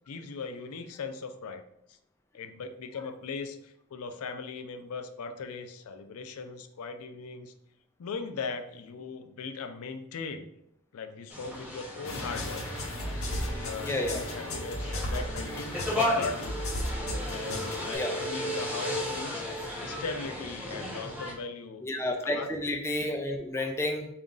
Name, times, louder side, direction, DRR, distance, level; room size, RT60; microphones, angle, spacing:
voice 1, 0.1-1.6 1.9-2.0 2.3-7.5 8.0-10.4 10.9-12.6 13.0-13.1 13.6-16.6 17.3-21.8 22.2-22.5, left 4 dB, 85° left, 8 dB, 0.4 m, -39 dB
sound 1, 11.3-21.3, left 1 dB, 10° right, 1.3 m, -35 dB
sound 2, 12.0-17.9, equal, 70° left, 0.8 m, -35 dB
voice 2, 13.8-14.2 17.9-18.1 21.8-24.1, left 1 dB, 10° left, 2 dB, 0.3 m, -31 dB
3.9 x 2.5 x 3.7 m, 0.76 s
head